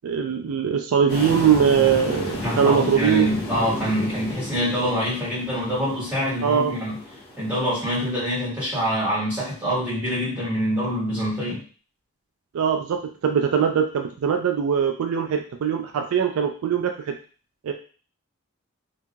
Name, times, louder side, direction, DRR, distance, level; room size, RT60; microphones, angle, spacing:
voice 1, 0.0-3.3 6.4-6.7 12.5-17.1 17.6-17.7, right 7 dB, 75° right, 4 dB, 0.3 m, -21 dB
sound 1, 1.1-8.1, left 1 dB, 45° left, 0.7 m, -33 dB
voice 2, 2.4-7.0 7.4-11.6, equal, 10° right, -10 dB, 1.5 m, -25 dB
2.7 x 2.7 x 2.3 m, 0.39 s
head